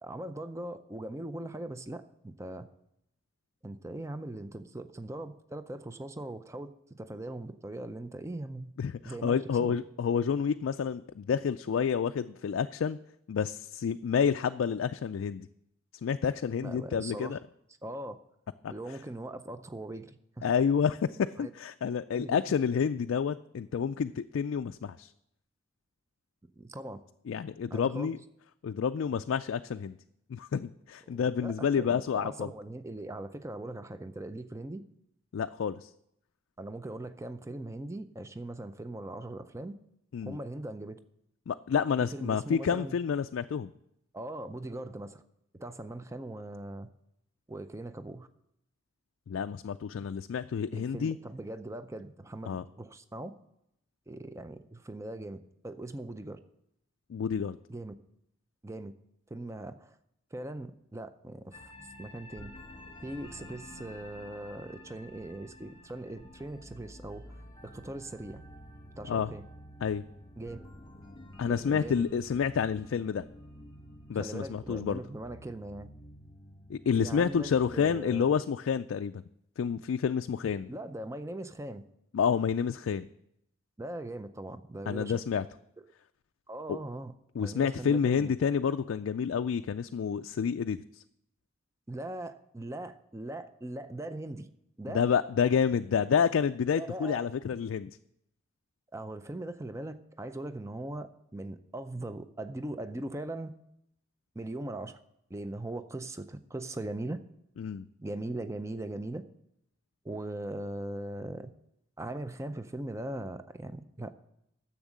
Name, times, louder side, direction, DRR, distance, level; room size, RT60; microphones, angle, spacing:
voice 1, 0.0-2.7 3.6-8.7 9.0-9.8 16.6-17.4 17.8-18.2 18.7-20.5 21.4-21.5 22.1-22.4 26.6-27.0 27.7-28.1 31.1-34.8 36.6-39.8 40.2-41.0 42.1-43.0 44.1-45.2 45.5-46.9 47.5-48.3 50.7-53.3 54.1-55.4 55.6-56.4 57.7-57.9 58.6-58.9 59.3-59.9 60.3-61.7 62.0-62.5 63.0-67.2 67.6-68.4 69.0-69.4 70.4-70.6 71.4-72.1 74.1-75.9 77.0-78.3 80.7-81.8 83.8-85.1 86.5-87.1 87.4-88.3 91.9-94.5 94.8-95.1 96.7-97.3 98.9-103.5 104.4-105.0 105.3-107.2 108.0-109.2 110.0-111.5 112.0-114.1, right 1 dB, 15° right, 10 dB, 0.5 m, -40 dB
voice 2, 8.8-13.0 13.3-15.5 16.0-17.4 18.6-19.0 20.4-25.1 27.3-28.2 28.6-30.0 30.3-32.5 35.3-35.9 40.1-40.4 41.5-43.7 49.3-51.2 52.5-52.6 57.1-57.6 69.1-69.3 69.8-70.0 71.4-73.2 74.1-75.0 76.7-79.2 79.6-80.7 82.1-83.1 84.9-85.5 86.7-86.8 87.4-91.0 94.9-98.0 107.6-107.9, left 7 dB, 70° left, 8 dB, 0.3 m, -29 dB
sound 1, 61.5-78.3, left 1 dB, 20° left, 1.5 m, -50 dB
10.5 x 7.1 x 7.3 m, 0.79 s
head